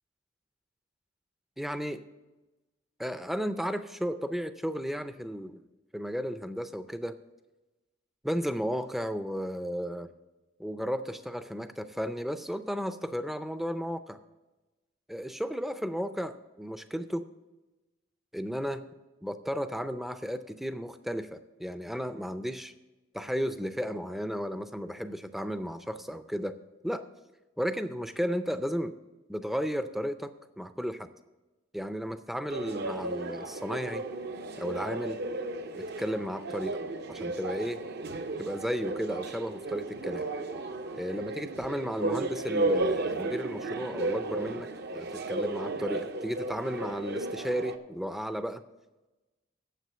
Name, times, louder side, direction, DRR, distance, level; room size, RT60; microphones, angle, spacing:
voice 1, 1.6-2.0 3.0-5.6 5.9-7.2 8.2-10.1 10.6-14.2 15.1-17.3 18.3-18.8 19.2-22.7 23.1-26.6 26.8-27.0 27.6-28.9 29.3-31.1 31.7-34.0 34.6-35.2 35.8-36.8 37.1-37.8 38.4-40.3 40.9-48.6, equal, ahead, 10 dB, 0.4 m, -34 dB
sound 1, 32.5-47.8, right 2 dB, 55° right, 0.6 m, -34 dB
9.2 x 7.6 x 6.7 m, 1.1 s
head